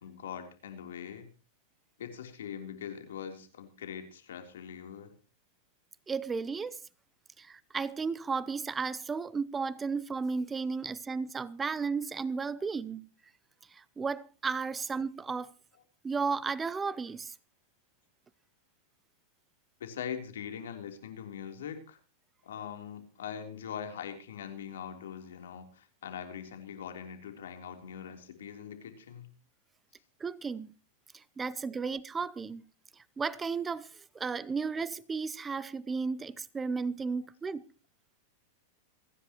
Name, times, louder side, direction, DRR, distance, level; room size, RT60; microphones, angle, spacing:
voice 1, 0.0-1.3 2.0-5.1 19.8-22.0 22.4-29.3 31.8-31.9, left 8 dB, 90° left, 3.5 m, -42 dB
voice 2, 6.1-6.8 7.4-13.1 13.7-15.5 16.0-17.3 30.2-30.7 31.1-32.7 33.2-37.6, right 5 dB, 15° right, 0.6 m, -34 dB
28.0 x 10.5 x 3.0 m
supercardioid pair, 140°, 0 cm